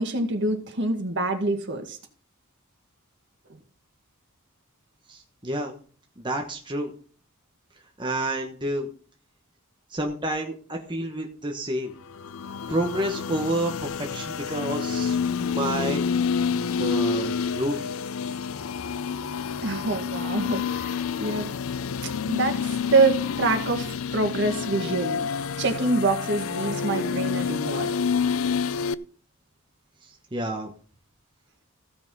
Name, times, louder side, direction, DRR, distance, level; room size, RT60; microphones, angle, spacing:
voice 1, 0.0-2.0 19.6-21.5 22.0-25.2 25.6-27.9, right 3 dB, 55° right, 5 dB, 2.0 m, -26 dB
voice 2, 5.1-5.7 6.2-6.9 8.0-8.9 9.9-11.9 12.7-16.0 16.5-17.9 30.0-30.7, right 1 dB, 20° right, 2 dB, 1.2 m, -29 dB
sound 1, 12.0-28.9, left 6 dB, 75° left, 0.5 m, -28 dB
15.0 x 5.8 x 5.5 m, 0.42 s
head